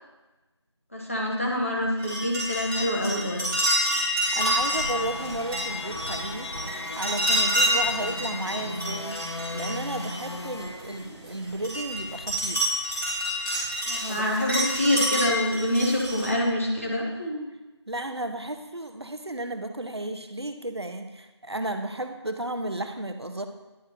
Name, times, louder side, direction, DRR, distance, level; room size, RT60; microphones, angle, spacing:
voice 1, 0.9-3.4 13.9-17.4, left 1 dB, 30° left, -2 dB, 1.3 m, -26 dB
sound 1, 2.0-10.8 11.3-16.3, equal, 10° right, 2.4 m, -28 dB
voice 2, 4.3-12.8 14.1-14.4 17.9-23.5, right 1 dB, 65° right, 7 dB, 0.8 m, -33 dB
sound 2, 4.7-11.7, left 1 dB, 65° left, 1.0 m, -37 dB
10.5 x 4.7 x 4.2 m, 1.1 s
figure-of-eight pair, 175°, 15 cm